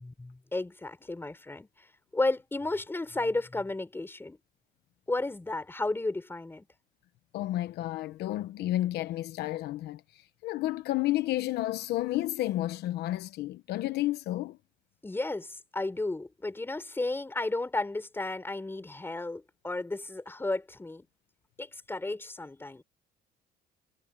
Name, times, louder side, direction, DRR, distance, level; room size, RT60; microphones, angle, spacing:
voice 1, 0.0-1.9 2.1-4.4 5.1-6.6 15.0-21.0 21.6-22.8, left 2 dB, 15° left, 5.2 m, -33 dB
voice 2, 7.3-14.6, left 15 dB, 75° left, 1.0 m, -31 dB
cardioid pair, 110°, 17 cm